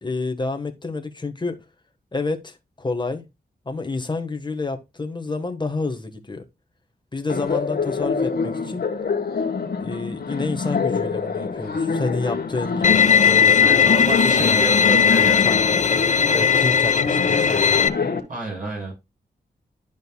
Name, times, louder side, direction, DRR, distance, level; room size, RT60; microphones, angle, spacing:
voice 1, 0.0-1.6 2.1-3.3 3.6-6.4 7.1-8.8 9.8-13.0 13.2-13.9 14.4-15.8 16.3-17.8, left 3 dB, 25° left, 1.3 m, -29 dB
Laughter, 7.3-18.2, left 4 dB, 60° left, 1.5 m, -26 dB
Bowed string instrument, 12.8-17.9, left 7 dB, 45° left, 0.5 m, -17 dB
voice 2, 13.6-15.6 18.3-18.9, right 2 dB, 50° right, 5.1 m, -30 dB
11.5 x 5.2 x 2.2 m
wide cardioid pair, 80°, 18 cm